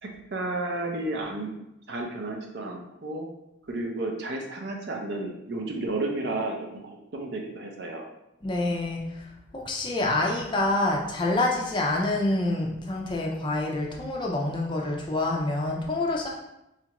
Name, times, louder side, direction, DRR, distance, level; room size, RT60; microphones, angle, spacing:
voice 1, 0.0-1.5 1.9-3.3 3.6-8.1, right 2 dB, 55° right, 1 dB, 0.5 m, -32 dB
voice 2, 8.4-16.3, left 2 dB, 25° left, -2 dB, 0.4 m, -27 dB
4.2 x 2.5 x 2.9 m, 0.87 s
head